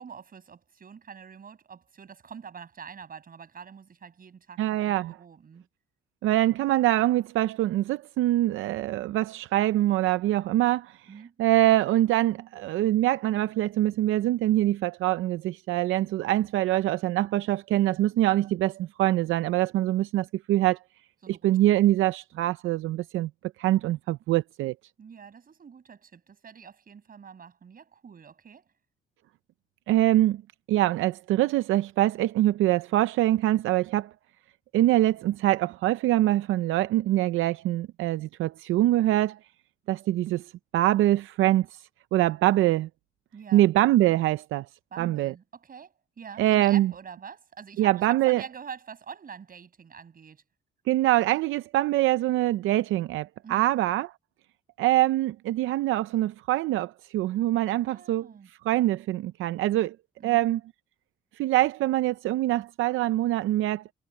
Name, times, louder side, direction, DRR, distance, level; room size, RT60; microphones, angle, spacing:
voice 1, 0.0-5.7 11.1-11.3 21.2-21.5 25.0-28.6 43.3-43.7 44.9-50.4 53.4-53.7 57.9-58.5 60.2-60.5, right 6 dB, 45° right, 6.8 m, -45 dB
voice 2, 4.6-5.2 6.2-11.0 11.4-20.8 21.3-23.3 23.6-24.7 29.9-30.4 30.7-34.1 34.7-39.4 39.9-40.5 40.7-41.7 42.1-42.9 43.5-44.7 45.0-45.3 46.4-46.9 47.8-48.4 50.9-54.1 54.8-58.3 58.6-60.0 60.2-60.6 61.4-63.9, right 15 dB, 85° right, 0.6 m, -24 dB
cardioid pair, 90°, 20 cm